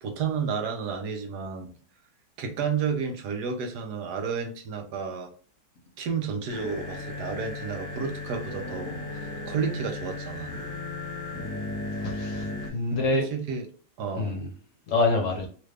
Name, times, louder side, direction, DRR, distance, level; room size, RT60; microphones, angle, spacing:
voice 1, 0.0-1.7 2.4-5.3 6.0-10.6 13.1-13.6 14.0-14.3, right 6 dB, 75° right, 5 dB, 1.2 m, -31 dB
sound 1, 6.5-12.7, left 2 dB, 20° left, 0.8 m, -35 dB
voice 2, 12.0-13.3 14.2-14.5 14.9-15.5, left 2 dB, 60° left, 0 dB, 1.0 m, -26 dB
3.2 x 2.5 x 3.2 m, 0.43 s
omnidirectional pair, 1.8 m